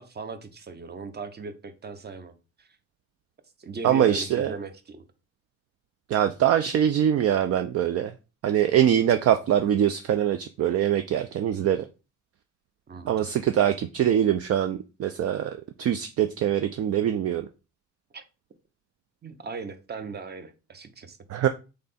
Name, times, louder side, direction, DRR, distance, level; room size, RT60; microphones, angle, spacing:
voice 1, 0.0-2.7 3.6-5.0 12.9-13.3 18.1-18.2 19.2-21.2, right 4 dB, 35° right, 0.8 m, -38 dB
voice 2, 3.8-4.5 6.1-8.1 8.4-11.8 13.1-17.5 21.3-21.5, right 10 dB, 55° right, 0.4 m, -23 dB
3.8 x 3.3 x 4.1 m
cardioid pair, 90°, 30 cm